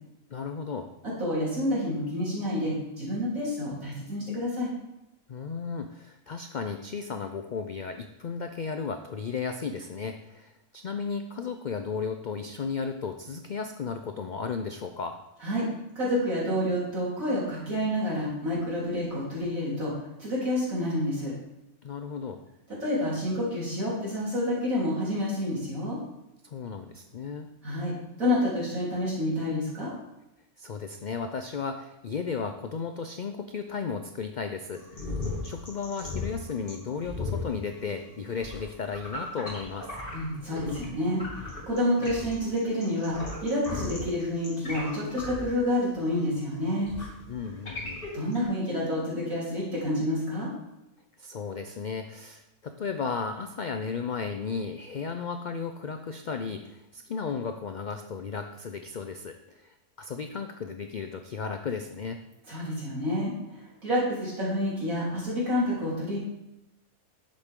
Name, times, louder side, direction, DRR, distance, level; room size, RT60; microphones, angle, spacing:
voice 1, 0.3-0.9 5.3-15.2 21.8-22.4 26.4-27.5 30.6-35.1 35.4-39.9 47.3-48.1 51.2-62.2, left 5 dB, 65° left, 7 dB, 0.4 m, -34 dB
voice 2, 1.0-4.7 15.4-15.7 16.0-19.9 20.2-21.3 22.8-26.0 27.6-29.9 40.1-46.9 48.1-50.5 62.5-66.2, left 1 dB, 75° right, -7 dB, 4.0 m, -29 dB
sound 1, 34.7-40.9 41.1-48.4, left 2 dB, 40° left, 2.8 m, -37 dB
10.5 x 7.6 x 3.7 m, 0.89 s
omnidirectional pair, 1.5 m